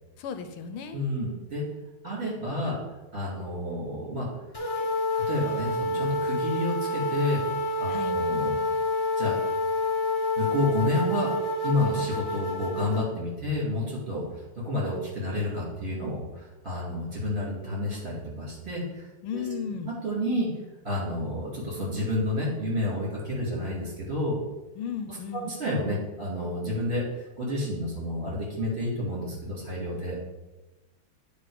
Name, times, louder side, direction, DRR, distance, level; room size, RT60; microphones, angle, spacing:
voice 1, 0.2-1.0 7.9-8.2 19.2-19.9 24.8-25.5, left 7 dB, 85° left, 8 dB, 1.5 m, -35 dB
voice 2, 0.9-1.6 2.0-4.4 5.1-7.4 7.8-8.6 9.2-9.5 10.4-11.3 11.6-20.5 20.8-24.4 25.1-30.2, left 1 dB, 30° right, -5 dB, 2.6 m, -30 dB
sound 1, 4.5-13.0, left 2 dB, 20° left, 0.9 m, -28 dB
9.5 x 3.6 x 4.8 m, 1.1 s
omnidirectional pair, 2.3 m